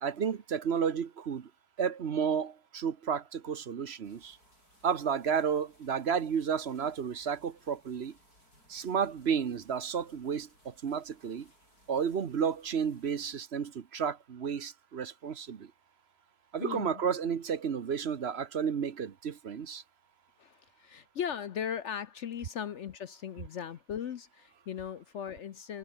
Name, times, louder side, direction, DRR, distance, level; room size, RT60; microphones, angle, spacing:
voice 1, 0.0-1.5 1.8-4.4 4.8-8.2 8.7-11.5 11.9-15.7 16.5-19.8, right 7 dB, 50° right, 1.2 m, -32 dB
sound 1, 4.0-13.4, left 2 dB, 85° left, 8.7 m, -65 dB
voice 2, 16.6-17.0 20.4-25.8, left 8 dB, 60° left, 0.9 m, -38 dB
omnidirectional pair, 1.6 m